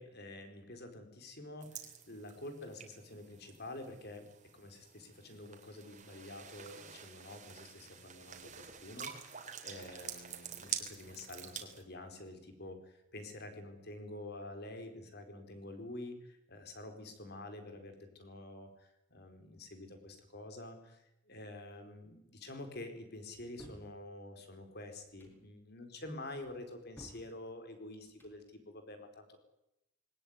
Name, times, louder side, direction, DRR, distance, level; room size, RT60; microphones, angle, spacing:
voice 1, 0.0-4.3 4.5-29.4, left 2 dB, 50° left, 7 dB, 4.6 m, -48 dB
sound 1, 1.6-11.8, right 8 dB, 35° right, 3.5 m, -47 dB
sound 2, 23.3-23.9 25.0-25.4 26.4-27.3 28.0-28.4, right 1 dB, 10° left, 5.7 m, -55 dB
21.5 x 18.5 x 9.7 m, 0.85 s
head